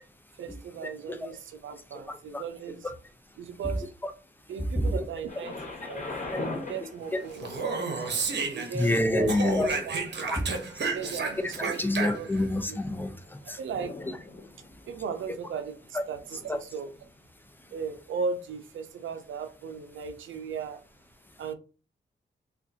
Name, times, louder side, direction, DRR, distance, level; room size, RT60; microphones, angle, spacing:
voice 1, 0.4-2.9 3.4-3.9 4.5-5.6 5.8-6.1 6.4-7.5 8.5-9.3 9.8-10.3 10.9-12.3 12.7-12.8 13.4-13.9 14.9-17.0 17.7-20.8 21.4-21.5, right 6 dB, 85° right, 0.5 m, -37 dB
voice 2, 2.1-2.4 4.8-5.0 7.1-7.2 8.7-9.7 10.3-10.4 11.8-13.1 13.5-13.6 16.5-16.6, left 1 dB, 10° left, 0.7 m, -26 dB
Thunder, 5.3-17.1 17.9-18.0, left 2 dB, 40° left, 1.3 m, -43 dB
Speech, 7.3-9.0 9.3-12.4, right 4 dB, 60° right, 0.9 m, -31 dB
3.7 x 2.4 x 2.7 m
cardioid pair, 55°, 19 cm